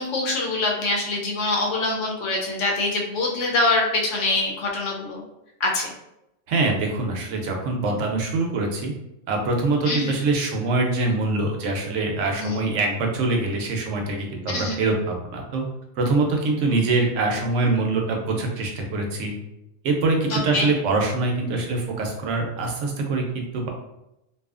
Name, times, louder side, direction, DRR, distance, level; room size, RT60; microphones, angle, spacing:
voice 1, 0.0-5.2 5.6-5.9 9.9-10.2 12.4-12.6 14.5-14.8 20.3-20.7, left 2 dB, 85° left, -1 dB, 1.0 m, -24 dB
voice 2, 6.5-8.9 9.3-15.6 16.0-19.3 19.8-23.7, right 3 dB, 80° right, 2 dB, 0.9 m, -24 dB
2.7 x 2.3 x 2.4 m, 0.87 s
omnidirectional pair, 1.2 m